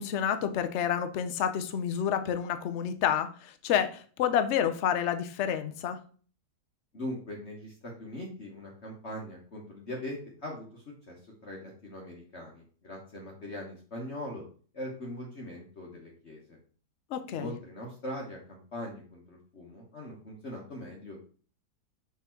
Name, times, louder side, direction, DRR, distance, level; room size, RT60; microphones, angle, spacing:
voice 1, 0.0-6.0 17.1-17.5, left 9 dB, 60° left, 9 dB, 0.7 m, -29 dB
voice 2, 6.9-14.4 14.7-16.6 17.3-21.2, left 1 dB, 45° left, -1 dB, 1.3 m, -41 dB
5.8 x 3.7 x 4.4 m, 0.42 s
omnidirectional pair, 1.8 m